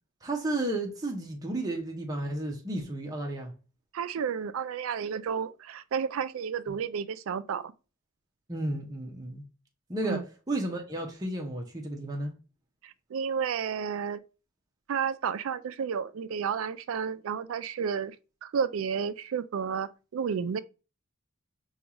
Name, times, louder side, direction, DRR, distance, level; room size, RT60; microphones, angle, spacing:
voice 1, 0.2-3.5 6.7-6.8 8.5-9.4 9.9-12.3, right 1 dB, 20° right, 0.7 m, -33 dB
voice 2, 3.9-7.7 10.0-10.2 12.8-14.2 14.9-18.2 18.4-20.6, right 7 dB, 80° right, 0.4 m, -31 dB
5.2 x 2.4 x 2.9 m
head